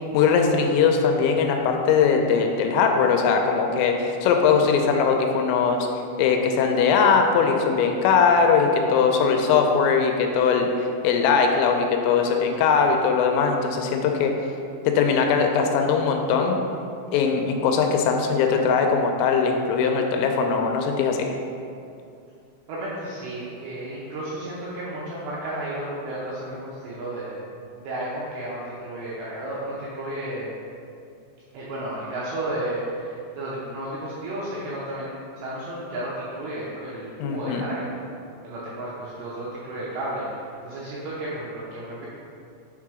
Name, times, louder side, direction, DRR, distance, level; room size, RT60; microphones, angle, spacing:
voice 1, 0.1-5.9 6.2-14.3 14.9-16.6 17.1-21.3 37.2-37.6, left 5 dB, 85° left, 3 dB, 3.1 m, -20 dB
voice 2, 22.7-27.4 27.8-30.5 31.5-37.9 38.4-42.1, right 1 dB, 80° right, -8 dB, 2.5 m, -32 dB
7.4 x 3.7 x 4.8 m, 2.5 s
omnidirectional pair, 5.9 m